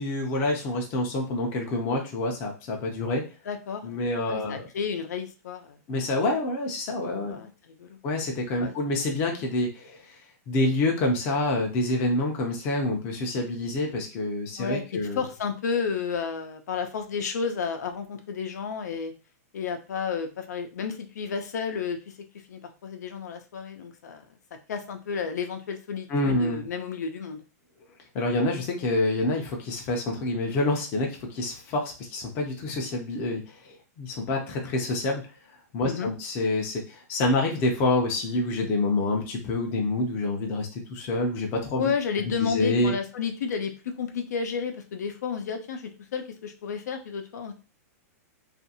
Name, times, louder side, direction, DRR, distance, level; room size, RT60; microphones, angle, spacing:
voice 1, 0.0-3.2 3.8-4.6 5.9-7.4 8.0-10.0 10.5-15.2 26.1-26.7 28.1-33.4 34.0-35.2 35.7-41.9 42.2-42.9, left 2 dB, 20° left, 1 dB, 0.5 m, -27 dB
voice 2, 3.5-4.0 4.3-5.8 7.2-8.0 8.6-8.7 14.6-14.8 15.1-19.1 19.5-22.0 22.5-24.2 24.7-27.4 35.8-36.1 41.8-43.7 44.0-47.5, left 6 dB, 85° left, 6 dB, 0.6 m, -31 dB
2.6 x 2.5 x 2.7 m, 0.33 s
supercardioid pair, 175°, 9 cm